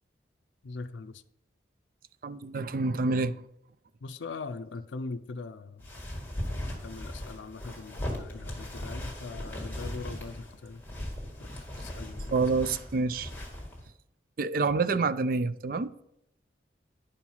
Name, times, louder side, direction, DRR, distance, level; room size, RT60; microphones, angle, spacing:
voice 1, 0.6-1.2 4.0-5.8 6.8-10.8 11.4-11.5 11.8-12.3, left 3 dB, 80° left, 0.5 m, -41 dB
voice 2, 2.2-3.4 12.3-13.3 14.4-15.9, right 4 dB, 50° right, 0.4 m, -27 dB
sound 1, 5.8-13.9, left 1 dB, 10° left, 1.6 m, -38 dB
10.5 x 4.6 x 5.5 m
head